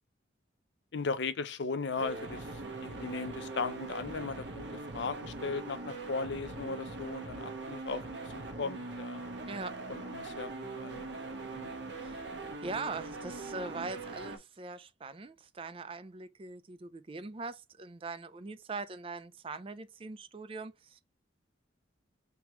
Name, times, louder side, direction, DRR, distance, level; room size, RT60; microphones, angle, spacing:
voice 1, 0.9-2.5 2.8-4.7 4.9-8.0 8.3-9.2 9.9-11.2 11.5-11.8, left 4 dB, 65° left, 0.5 m, -37 dB
sound 1, 2.0-14.4, right 2 dB, 65° right, 1.0 m, -41 dB
voice 2, 9.5-9.8 12.0-12.3 12.6-21.0, right 3 dB, 30° right, 0.4 m, -41 dB
3.4 x 3.0 x 4.6 m
head